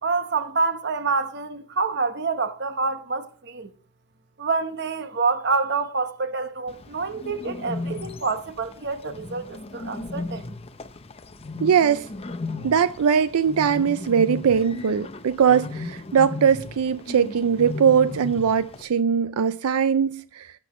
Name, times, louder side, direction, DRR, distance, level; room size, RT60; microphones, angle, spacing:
voice 1, 0.0-3.7 4.4-10.5, right 4 dB, 50° right, 1.0 m, -27 dB
Bird, 6.7-18.8, left 3 dB, 25° left, 0.6 m, -36 dB
voice 2, 11.6-12.1 12.6-20.5, right 7 dB, 80° right, 0.4 m, -21 dB
18.5 x 7.6 x 3.1 m
head